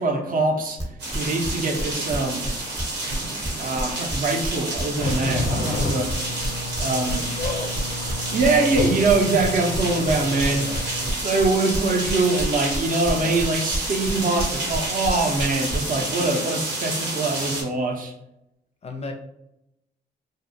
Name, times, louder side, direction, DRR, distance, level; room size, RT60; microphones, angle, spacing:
voice 1, 0.0-2.5 3.6-6.1 6.8-7.3 8.3-10.7 11.0-18.1, right 3 dB, 50° right, 3 dB, 0.6 m, -23 dB
sound 1, 0.8-2.5 2.8-6.8 7.1-10.8 11.1-15.8, equal, 15° right, 0.8 m, -30 dB
sound 2, 1.0-17.6, right 2 dB, 80° right, 1.0 m, -30 dB
sound 3, 5.0-11.1, left 2 dB, 90° left, 0.5 m, -31 dB
voice 2, 7.0-7.7 10.5-10.8 13.0-13.4 18.8-19.1, left 3 dB, 35° left, 3 dB, 0.4 m, -34 dB
2.5 x 2.3 x 2.6 m, 0.84 s
cardioid pair, 75°, 18 cm